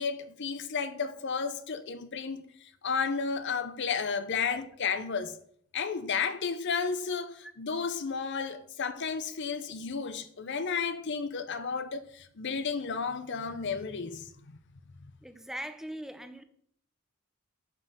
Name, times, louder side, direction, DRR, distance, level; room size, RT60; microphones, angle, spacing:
voice 1, 0.0-5.4 5.7-14.6 15.0-15.1, left 5 dB, 55° left, 0.6 m, -33 dB
voice 2, 15.2-16.4, right 1 dB, ahead, 0.5 m, -40 dB
7.2 x 5.4 x 5.5 m
head